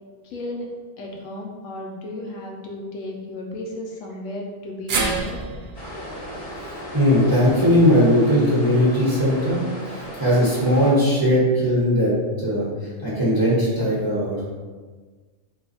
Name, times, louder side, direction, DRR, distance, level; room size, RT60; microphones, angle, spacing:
voice 1, 0.2-0.7 1.0-5.4, left 1 dB, 75° left, -1 dB, 1.0 m, -34 dB
sound 1, 4.9-9.1 9.5-9.6 10.8-10.9, right 4 dB, 70° right, 0.5 m, -31 dB
sound 2, 5.7-10.9, equal, 30° left, 1.0 m, -36 dB
voice 2, 6.6-9.6 9.9-12.1 12.4-12.6 13.0-14.4, equal, 20° right, -9 dB, 1.1 m, -19 dB
3.3 x 2.3 x 4.0 m, 1.4 s
omnidirectional pair, 1.4 m